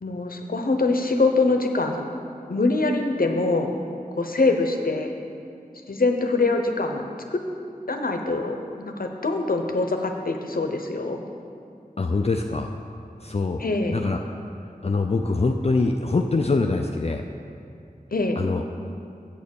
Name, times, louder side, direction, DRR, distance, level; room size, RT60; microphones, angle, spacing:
voice 1, 0.0-2.0 2.5-3.7 4.1-5.1 5.9-7.4 7.9-11.2 13.6-14.0 18.1-18.4, left 3 dB, 70° left, 4 dB, 0.8 m, -24 dB
voice 2, 12.0-12.7 13.2-13.6 13.9-14.2 14.8-17.2 18.4-18.6, left 3 dB, 45° left, 4 dB, 0.4 m, -23 dB
7.8 x 6.5 x 6.9 m, 2.6 s
wide cardioid pair, 50°, 15 cm